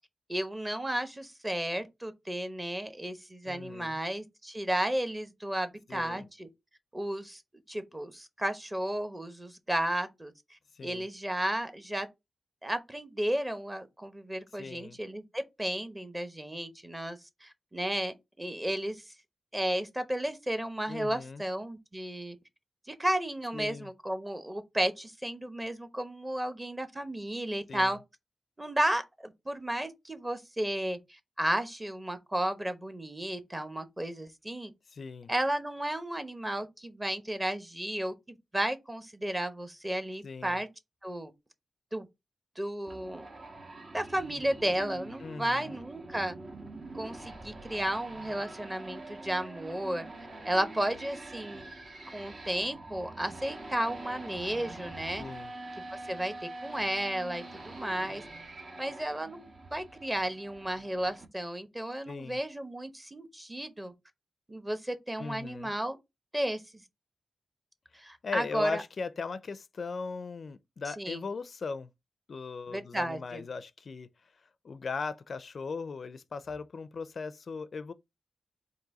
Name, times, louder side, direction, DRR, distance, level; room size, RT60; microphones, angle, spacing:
voice 1, 0.3-6.5 6.9-7.4 7.7-10.3 10.8-12.1 12.6-19.0 19.5-22.4 22.9-28.0 28.6-34.7 35.3-40.7 41.0-41.3 41.9-42.1 42.6-43.2 43.9-46.4 46.9-50.1 50.4-51.7 52.1-55.2 56.1-56.3 56.6-58.2 58.8-63.9 64.5-66.0 66.3-66.6 67.9-68.8 71.0-71.2 72.7-73.4, right 1 dB, 15° right, 0.8 m, -33 dB
voice 2, 3.5-4.0 5.9-6.3 10.7-11.1 14.5-15.0 20.9-21.4 23.5-23.9 27.7-28.0 34.9-35.3 40.2-40.6 45.2-45.7 55.2-55.5 62.1-62.4 65.2-65.7 68.2-71.9 72.3-74.1 74.6-77.9, left 4 dB, 60° left, 0.4 m, -38 dB
sound 1, 42.9-61.2, right 2 dB, 60° right, 1.1 m, -45 dB
3.9 x 2.6 x 4.7 m
wide cardioid pair, 90°, 0 cm